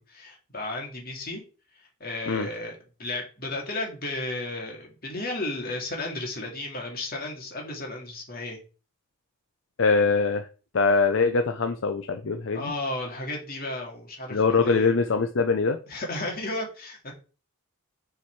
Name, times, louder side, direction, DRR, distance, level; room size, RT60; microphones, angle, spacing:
voice 1, 0.0-1.4 1.8-8.6 12.5-14.9 15.9-17.1, left 2 dB, 45° left, 0 dB, 2.4 m, -34 dB
voice 2, 9.8-10.5 10.7-12.6 14.3-15.8, left 4 dB, 65° left, 7 dB, 0.6 m, -23 dB
7.1 x 4.7 x 4.6 m, 0.35 s
head